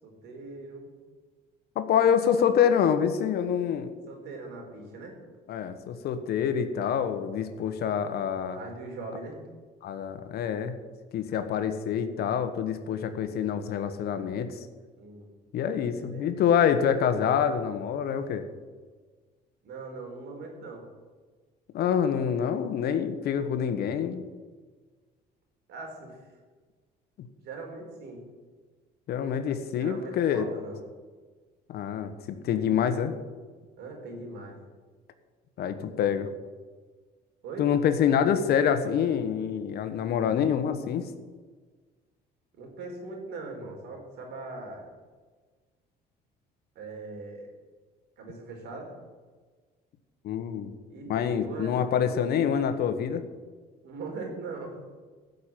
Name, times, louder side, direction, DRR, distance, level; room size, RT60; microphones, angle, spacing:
voice 1, 0.0-0.9 4.1-5.1 8.5-9.4 15.0-15.3 15.8-16.3 19.6-20.8 25.7-26.2 27.4-28.2 29.8-30.8 33.8-34.5 37.4-37.7 42.6-44.9 46.7-47.5 48.2-48.9 50.9-52.4 53.8-54.8, right 3 dB, 75° right, 1 dB, 4.5 m, -40 dB
voice 2, 1.7-3.9 5.5-8.6 9.8-10.8 11.1-14.7 15.5-18.5 21.7-24.2 27.2-27.3 29.1-30.5 31.7-33.1 35.6-36.3 37.6-41.1 50.2-50.7 51.1-53.2, left 8 dB, 70° left, 10 dB, 1.4 m, -26 dB
15.0 x 6.7 x 9.1 m, 1.4 s
cardioid pair, 110°, 17 cm